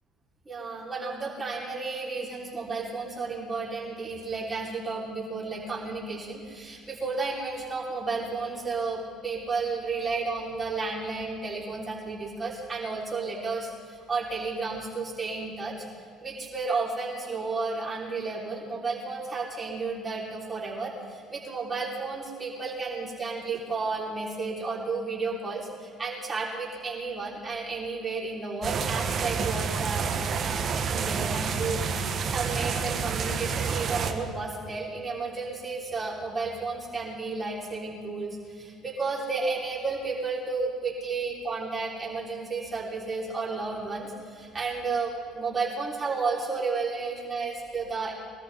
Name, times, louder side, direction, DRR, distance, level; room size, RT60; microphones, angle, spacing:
voice 1, 0.5-15.7 16.2-48.1, right 4 dB, 25° right, -5 dB, 5.5 m, -32 dB
sound 1, 28.6-34.1, right 6 dB, 50° right, 1.5 m, -29 dB
24.0 x 13.5 x 4.2 m, 2.2 s
supercardioid pair, 85°, 0 cm